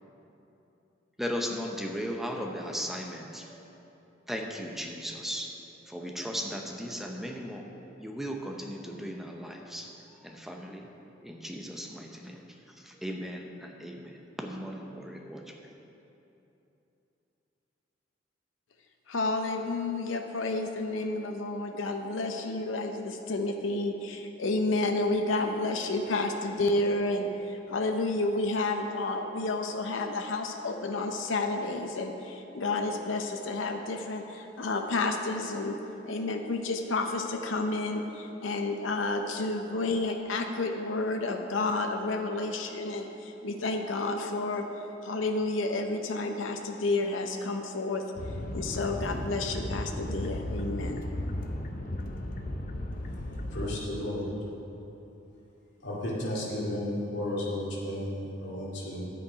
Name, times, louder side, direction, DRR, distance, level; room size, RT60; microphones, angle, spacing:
voice 1, 1.2-3.6 4.3-5.5 5.9-7.7 8.0-9.9 10.2-10.9 11.2-12.4 12.8-15.4, equal, ahead, 1 dB, 0.7 m, -37 dB
voice 2, 19.1-35.8 36.1-44.7 45.0-48.1 48.5-51.0, left 2 dB, 85° left, 4 dB, 0.7 m, -30 dB
sound 1, 48.2-53.8, left 1 dB, 45° left, 0.7 m, -35 dB
voice 3, 53.1-54.3 55.8-59.1, left 1 dB, 70° left, -5 dB, 2.3 m, -33 dB
10.5 x 8.5 x 5.1 m, 2.9 s
head